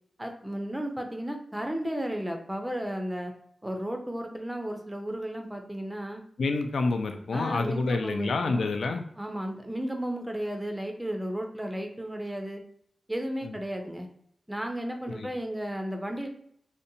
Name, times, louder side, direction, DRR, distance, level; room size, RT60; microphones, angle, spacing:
voice 1, 0.2-3.3 3.6-6.2 7.3-8.6 9.2-12.6 13.1-14.1 14.5-16.3, right 1 dB, 10° right, 3 dB, 0.4 m, -34 dB
voice 2, 6.4-9.0 13.4-13.6 15.1-15.3, left 3 dB, 90° left, 6 dB, 0.3 m, -28 dB
2.6 x 2.1 x 2.6 m, 0.67 s
wide cardioid pair, 105°, 0 cm